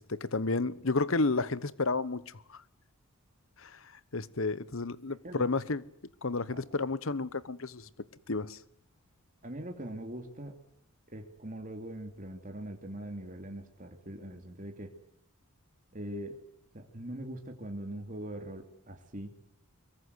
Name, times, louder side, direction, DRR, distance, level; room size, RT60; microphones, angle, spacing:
voice 1, 0.1-2.6 3.6-3.7 4.1-5.8 6.2-7.9 8.3-8.6, left 3 dB, 60° left, 1.1 m, -31 dB
voice 2, 9.4-10.6 11.1-14.9 15.9-16.4 16.7-19.3, right 1 dB, 35° right, 2.9 m, -42 dB
24.5 x 23.0 x 8.1 m
head